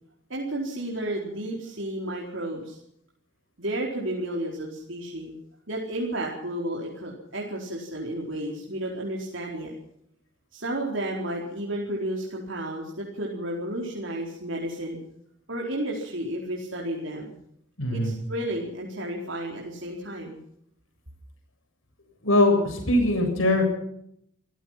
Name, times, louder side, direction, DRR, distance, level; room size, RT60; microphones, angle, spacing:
voice 1, 0.3-2.8 3.6-5.3 5.7-9.7 10.5-15.0 15.5-17.3 17.9-20.4, right 1 dB, 65° right, -2 dB, 4.5 m, -32 dB
voice 2, 17.8-18.1 22.2-23.6, left 1 dB, 80° left, 3 dB, 7.6 m, -21 dB
27.5 x 16.0 x 5.9 m, 0.73 s
head